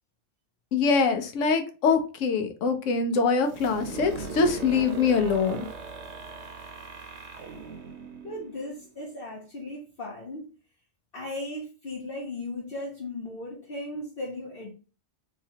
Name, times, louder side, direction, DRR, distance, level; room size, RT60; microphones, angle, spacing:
voice 1, 0.7-5.7, left 5 dB, 80° left, 1.0 m, -24 dB
sound 1, 3.4-9.1, right 5 dB, 70° right, 0.9 m, -39 dB
voice 2, 8.2-10.5 11.1-14.7, left 1 dB, 55° left, 0.8 m, -37 dB
3.1 x 2.8 x 2.8 m
omnidirectional pair, 1.3 m